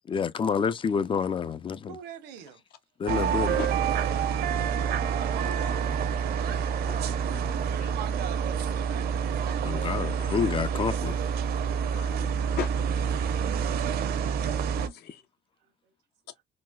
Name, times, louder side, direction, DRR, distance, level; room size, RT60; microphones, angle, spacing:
voice 1, 0.1-1.9 3.0-3.6 9.6-11.2, left 6 dB, 30° left, 0.4 m, -28 dB
voice 2, 1.9-2.6 6.8-7.0 7.4-7.5 9.5-10.0 15.2-15.3 15.6-15.9, right 8 dB, 85° right, 1.0 m, -47 dB
sound 1, 3.1-14.9, right 7 dB, 65° right, 0.7 m, -28 dB
voice 3, 3.2-3.7 4.3-4.5 5.0-5.9 6.9-7.9 11.8-13.3 14.8-15.2, left 8 dB, 70° left, 0.8 m, -41 dB
4.0 x 2.3 x 2.2 m
cardioid pair, 110°, 17 cm